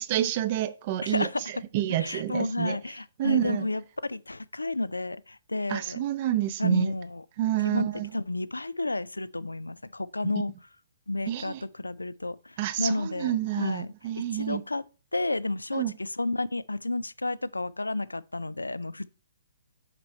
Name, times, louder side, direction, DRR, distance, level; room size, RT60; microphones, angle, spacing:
voice 1, 0.0-1.3 1.7-2.8 3.2-3.7 5.7-6.9 7.4-8.1 10.2-10.3 11.3-11.6 12.6-14.6 15.7-15.9, right 12 dB, 40° right, 0.6 m, -28 dB
voice 2, 1.0-1.4 2.0-6.0 6.6-7.2 7.6-10.5 11.1-14.8 15.1-19.1, left 2 dB, 85° left, 0.4 m, -31 dB
6.1 x 5.9 x 4.2 m
figure-of-eight pair, 125°, 0 cm